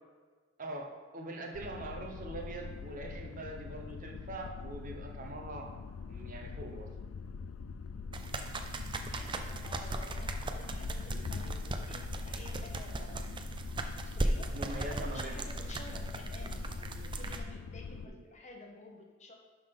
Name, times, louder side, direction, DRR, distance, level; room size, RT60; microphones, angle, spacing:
voice 1, 1.1-5.7 6.1-6.9 14.5-15.4 18.0-18.1, right 2 dB, 40° right, 1 dB, 1.0 m, -42 dB
sound 1, 1.5-18.1, left 5 dB, 80° left, 0.4 m, -43 dB
sound 2, 8.1-17.4, right 2 dB, 25° right, 0.5 m, -37 dB
voice 2, 9.0-13.3 13.8-19.3, left 2 dB, 35° left, 2 dB, 1.0 m, -52 dB
11.5 x 3.9 x 5.3 m, 1.4 s
head